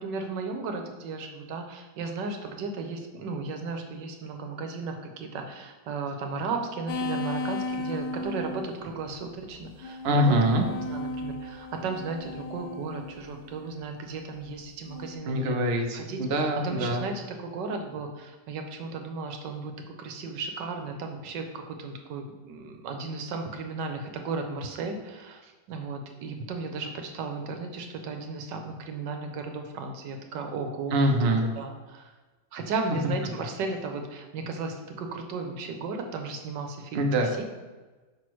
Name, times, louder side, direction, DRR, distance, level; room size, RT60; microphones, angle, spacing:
voice 1, 0.0-10.3 10.9-15.6 15.9-16.2 16.6-19.7 20.0-32.1 32.5-37.1 37.4-37.5, right 4 dB, 80° right, 4 dB, 1.4 m, -35 dB
sound 1, 6.9-8.7 9.5-13.6 14.9-15.1, left 2 dB, 70° left, 1.1 m, -35 dB
voice 2, 10.0-10.7 15.3-17.1 30.9-31.5 36.9-37.3, right 1 dB, 50° right, 3 dB, 0.7 m, -24 dB
6.0 x 5.5 x 3.1 m, 1.2 s
omnidirectional pair, 1.9 m